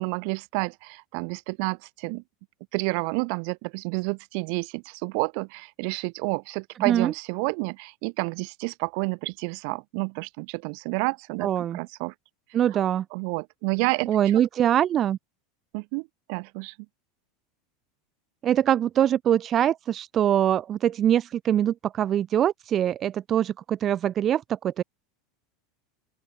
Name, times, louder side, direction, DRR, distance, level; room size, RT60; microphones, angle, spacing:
voice 1, 0.0-2.2 2.7-12.1 13.1-14.1 15.7-16.7, right 40 dB or more, 65° right, 1.5 m, -30 dB
voice 2, 11.4-11.8 12.5-13.0 14.1-15.2 18.4-24.8, right 10 dB, 35° right, 0.3 m, -23 dB
open air
supercardioid pair, 125°, 0 cm